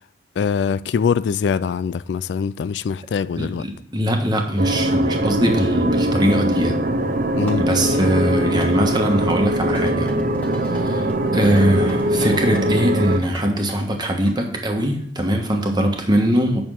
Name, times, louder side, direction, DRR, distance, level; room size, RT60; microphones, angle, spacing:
voice 1, 0.4-3.6 7.4-7.6 11.4-11.5, left 6 dB, 70° left, 0.3 m, -23 dB
voice 2, 3.4-6.8 7.6-10.1 10.5-16.7, right 1 dB, 25° right, 1.3 m, -21 dB
sound 1, 4.6-13.2, right 1 dB, 50° right, 0.7 m, -21 dB
sound 2, 7.5-14.3, right 1 dB, 10° left, 1.4 m, -40 dB
8.6 x 6.3 x 3.6 m
head